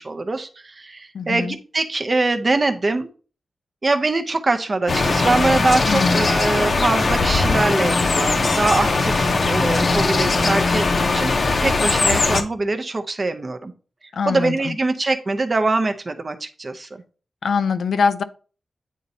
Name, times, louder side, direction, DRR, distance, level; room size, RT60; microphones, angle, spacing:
voice 1, 0.0-3.1 3.8-13.7 14.3-17.0, right 3 dB, 35° right, 0.6 m, -23 dB
voice 2, 1.1-1.5 5.9-6.4 14.1-14.7 17.4-18.2, left 5 dB, 80° left, 0.4 m, -23 dB
sound 1, 4.9-12.4, left 3 dB, 55° left, 0.7 m, -20 dB
9.1 x 4.1 x 2.7 m
wide cardioid pair, 105°, 0 cm